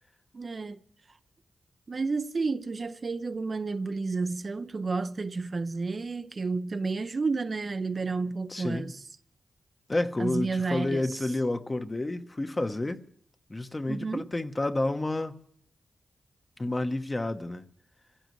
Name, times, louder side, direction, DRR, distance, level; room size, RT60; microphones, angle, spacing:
voice 1, 0.3-0.8 1.9-9.0 10.2-11.1 13.9-14.3, right 4 dB, 50° right, 0.6 m, -31 dB
voice 2, 8.5-8.9 9.9-13.0 13.5-15.4 16.6-17.6, left 2 dB, 30° left, 1.0 m, -30 dB
26.0 x 15.5 x 3.2 m
cardioid pair, 60°, 0 cm